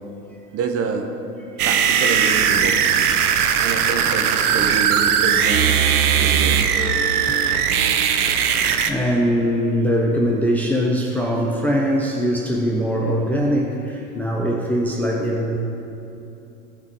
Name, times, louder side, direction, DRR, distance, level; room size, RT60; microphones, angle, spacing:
voice 1, 0.5-1.1 1.6-3.0 3.6-5.8 6.2-6.7, right 5 dB, 30° right, 5 dB, 1.2 m, -27 dB
sound 1, 1.6-8.9, right 8 dB, 70° right, 1.0 m, -19 dB
voice 2, 8.9-15.6, equal, 5° left, -2 dB, 0.7 m, -21 dB
17.5 x 5.8 x 4.6 m, 2.9 s
hypercardioid pair, 100°, 46 cm